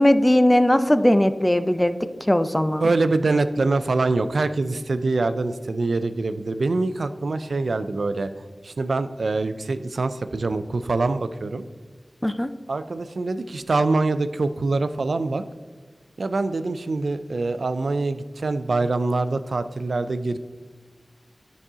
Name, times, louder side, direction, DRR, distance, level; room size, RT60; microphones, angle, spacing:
voice 1, 0.0-2.9 12.2-12.5, left 1 dB, 15° left, 11 dB, 0.4 m, -19 dB
voice 2, 2.8-8.3 8.6-11.6 12.7-15.4 16.2-20.4, right 3 dB, 85° right, 12 dB, 0.3 m, -24 dB
9.9 x 4.1 x 3.6 m, 1.4 s
cardioid pair, 40°, 0 cm